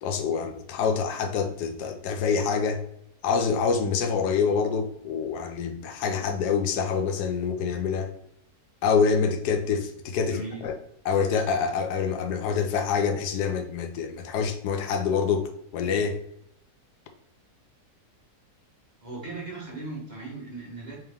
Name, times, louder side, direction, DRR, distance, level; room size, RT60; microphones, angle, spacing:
voice 1, 0.0-2.8 3.2-8.1 8.8-10.7 11.1-16.2, left 6 dB, 85° left, 1.2 m, -26 dB
voice 2, 10.3-10.7 19.0-21.0, right 3 dB, 30° right, 1.0 m, -38 dB
3.5 x 3.2 x 3.4 m
omnidirectional pair, 1.7 m